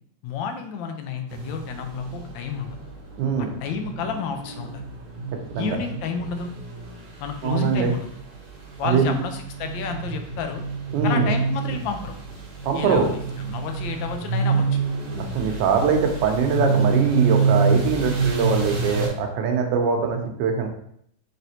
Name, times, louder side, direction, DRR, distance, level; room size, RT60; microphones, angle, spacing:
voice 1, 0.2-2.8 3.4-4.8 5.5-6.5 7.2-8.1 8.8-10.6 11.0-12.1 12.7-14.8, left 6 dB, 75° left, 5 dB, 1.3 m, -31 dB
sound 1, 1.3-19.1, right 4 dB, 50° right, 0.8 m, -27 dB
voice 2, 3.2-3.5 5.5-5.8 7.4-7.9 8.8-9.1 10.9-11.3 12.6-13.1 15.3-20.7, right 6 dB, 70° right, 3 dB, 1.2 m, -22 dB
4.0 x 3.4 x 2.8 m, 0.68 s
omnidirectional pair, 2.2 m